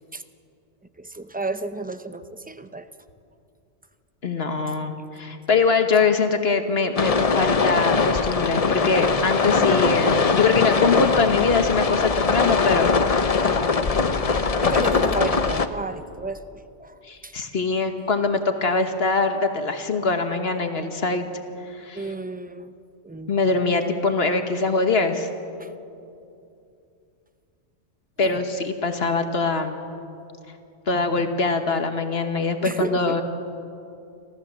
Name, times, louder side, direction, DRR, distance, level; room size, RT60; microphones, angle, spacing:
voice 1, 1.0-2.9 14.6-16.4 16.8-17.3 21.9-22.7 23.0-23.5 25.6-25.7 28.2-28.4 32.6-33.2, right 2 dB, 10° right, 11 dB, 0.4 m, -32 dB
voice 2, 4.2-13.0 17.0-21.2 21.7-22.0 23.3-25.3 28.2-29.8 30.9-33.2, left 4 dB, 60° left, 7 dB, 1.5 m, -23 dB
sound 1, 7.0-15.7, left 4 dB, 35° left, 0.7 m, -21 dB
27.5 x 14.5 x 7.4 m, 2.6 s
omnidirectional pair, 1.2 m